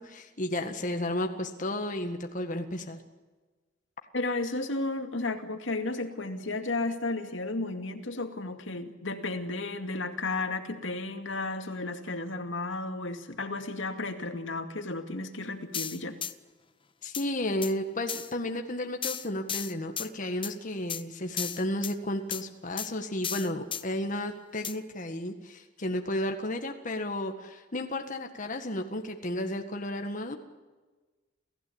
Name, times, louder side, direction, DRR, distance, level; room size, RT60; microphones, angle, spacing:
voice 1, 0.0-3.0 17.0-30.4, left 1 dB, 40° left, 5 dB, 1.7 m, -33 dB
voice 2, 4.1-16.2, left 2 dB, 70° left, 6 dB, 2.3 m, -33 dB
sound 1, 15.7-16.3 17.1-17.3 17.6-17.7 18.1-18.3 19.0-20.1 20.4-20.5 20.9-21.0 21.4-21.9 22.3-22.4 22.8-22.9 23.2-23.8 24.6-24.8, left 9 dB, 25° left, 0.8 m, -34 dB
28.5 x 15.5 x 8.8 m, 1.3 s
head